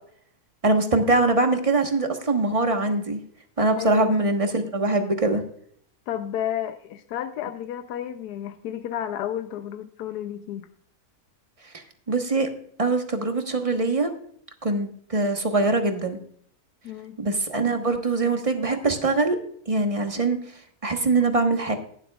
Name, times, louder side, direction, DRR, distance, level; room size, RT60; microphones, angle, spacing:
voice 1, 0.6-3.2 3.6-5.4 11.7-12.5 12.8-14.1 14.6-16.2 17.2-19.4 19.7-20.4 20.8-21.8, right 2 dB, 25° right, 5 dB, 1.1 m, -23 dB
voice 2, 3.8-4.2 6.1-10.7 16.8-17.2, left 10 dB, 90° left, 8 dB, 1.2 m, -32 dB
19.0 x 7.3 x 2.3 m, 0.62 s
omnidirectional pair, 1.6 m